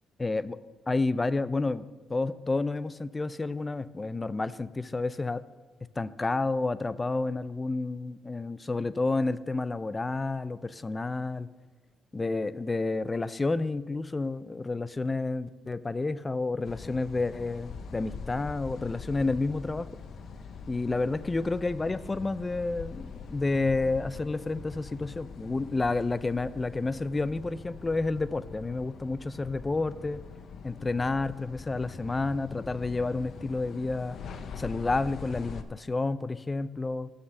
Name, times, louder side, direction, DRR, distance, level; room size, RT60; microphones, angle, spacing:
voice 1, 0.2-0.6 0.9-5.4 6.0-11.5 12.1-19.9 20.7-30.2 30.6-34.2 34.6-37.1, left 3 dB, 20° left, 16 dB, 0.4 m, -30 dB
sound 1, 16.6-35.6, left 5 dB, 60° left, 0.7 m, -43 dB
7.4 x 6.6 x 7.0 m, 1.4 s
cardioid pair, 90°, 0 cm